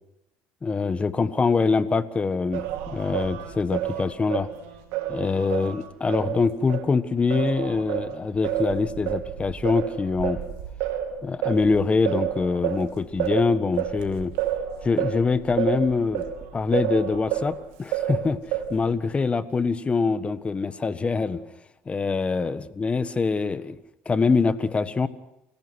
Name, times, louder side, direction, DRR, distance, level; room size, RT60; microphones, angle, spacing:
voice 1, 0.6-4.5 5.1-10.4 11.2-14.3 14.8-16.3 16.5-18.4 18.7-21.4 21.9-23.8 24.0-25.1, left 4 dB, 25° left, 13 dB, 1.4 m, -24 dB
Singing, 2.5-6.9 7.3-17.6 17.9-18.9, right 11 dB, 80° right, 2.9 m, -30 dB
29.0 x 16.5 x 6.3 m, 0.88 s
supercardioid pair, 90°, 5 cm